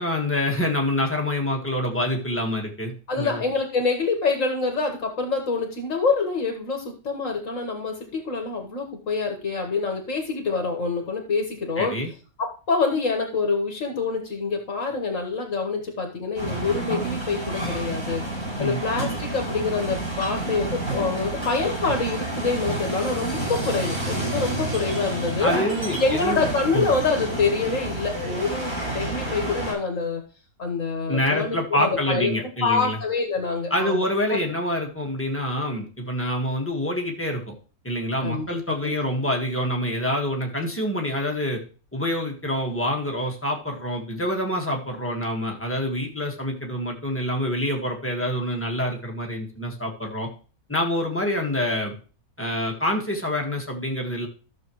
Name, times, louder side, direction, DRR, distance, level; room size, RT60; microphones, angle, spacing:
voice 1, 0.0-3.4 11.8-12.1 18.6-18.8 25.4-26.4 26.7-26.9 31.1-33.0 33.7-37.5 37.8-41.6 41.9-50.3 50.7-51.9 52.4-54.3, left 1 dB, 10° left, 0 dB, 1.6 m, -26 dB
voice 2, 3.1-11.9 12.4-25.5 26.0-30.2 30.6-32.3 32.6-34.4 38.2-39.0, left 4 dB, 60° left, 3 dB, 1.8 m, -26 dB
sound 1, 16.4-29.7, right 1 dB, 80° right, 6.7 m, -29 dB
13.0 x 6.7 x 3.1 m, 0.37 s
omnidirectional pair, 1.5 m